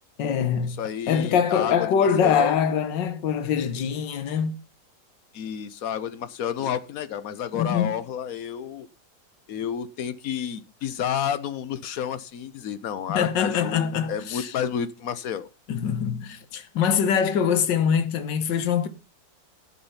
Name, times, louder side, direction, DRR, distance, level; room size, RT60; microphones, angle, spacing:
voice 1, 0.2-0.8 1.1-4.5 7.5-8.0 13.1-14.5 15.7-18.9, left 7 dB, 75° left, 1.7 m, -23 dB
voice 2, 0.8-2.6 5.3-8.9 9.5-15.5, left 9 dB, 60° left, 1.1 m, -30 dB
12.0 x 7.0 x 5.6 m
omnidirectional pair, 2.0 m